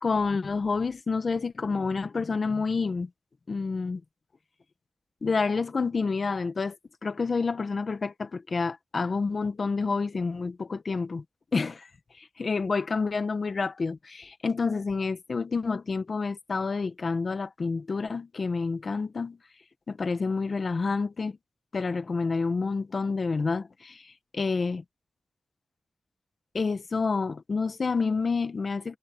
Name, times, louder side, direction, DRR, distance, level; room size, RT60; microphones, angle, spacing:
voice 1, 0.0-3.1 3.5-4.0 5.2-11.2 11.5-11.9 12.2-19.4 19.9-21.4 21.7-24.8 26.5-29.0, left 4 dB, 55° left, 1.5 m, -29 dB
cardioid pair, 70°, 0 cm